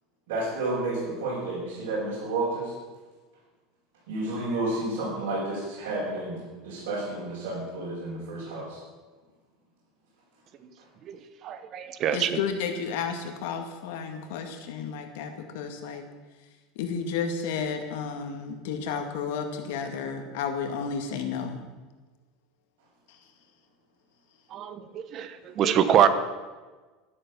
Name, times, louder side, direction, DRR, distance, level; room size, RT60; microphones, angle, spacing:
voice 1, 0.3-2.7 4.1-6.4 6.6-8.8, right 2 dB, 75° right, -8 dB, 5.9 m, -31 dB
voice 2, 11.4-12.3 24.5-25.3 25.6-26.1, right 9 dB, 35° right, 11 dB, 1.0 m, -24 dB
voice 3, 12.1-16.0 16.8-21.6 23.1-23.2, left 6 dB, 75° left, 5 dB, 2.2 m, -32 dB
12.5 x 11.0 x 7.2 m, 1.3 s
supercardioid pair, 165°, 0 cm